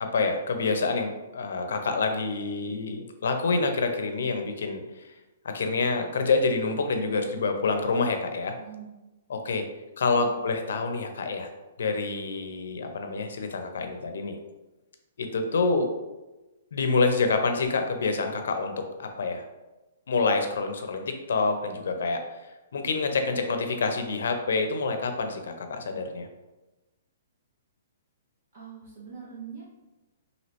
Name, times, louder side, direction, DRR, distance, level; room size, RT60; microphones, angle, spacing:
voice 1, 0.0-5.1 5.4-8.5 9.3-9.6 10.0-11.5 11.8-14.4 15.2-15.9 16.7-18.7 19.0-19.4 20.1-22.2 22.7-26.3, left 4 dB, 70° left, 6 dB, 0.5 m, -27 dB
voice 2, 8.6-9.0 10.1-10.4 28.5-29.6, right 7 dB, 40° right, -5 dB, 0.6 m, -43 dB
2.9 x 2.7 x 3.1 m, 1.1 s
hypercardioid pair, 175°, 0 cm